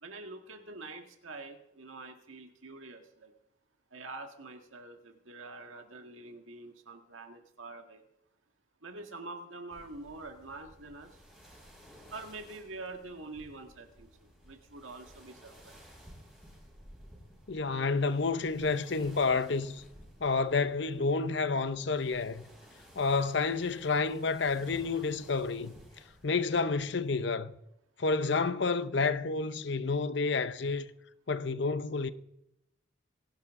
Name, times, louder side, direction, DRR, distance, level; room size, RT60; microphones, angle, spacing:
voice 1, 0.0-3.3 3.9-8.0 8.8-11.2 12.1-15.8, right 3 dB, 80° right, 1.8 m, -46 dB
sound 1, 9.7-27.3, equal, 5° right, 5.3 m, -56 dB
voice 2, 17.5-19.8 20.2-22.4 23.0-25.7 26.2-27.5 28.0-30.9 31.3-32.1, left 4 dB, 60° left, 0.7 m, -29 dB
26.0 x 11.5 x 3.7 m
head